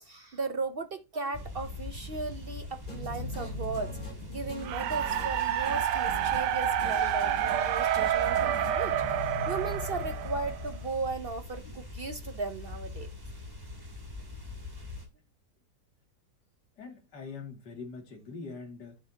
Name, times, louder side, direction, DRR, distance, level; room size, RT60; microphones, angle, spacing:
voice 1, 0.0-4.0 4.3-9.0 9.5-13.1, right 4 dB, 55° right, 0.6 m, -36 dB
sound 1, 1.3-15.1, left 3 dB, 15° right, 2.4 m, -41 dB
sound 2, 2.9-11.1, left 1 dB, 30° left, 3.5 m, -42 dB
sound 3, 4.6-10.8, right 10 dB, 85° right, 1.3 m, -29 dB
voice 2, 16.8-19.0, left 4 dB, 80° left, 3.0 m, -43 dB
11.5 x 7.0 x 2.8 m
omnidirectional pair, 1.8 m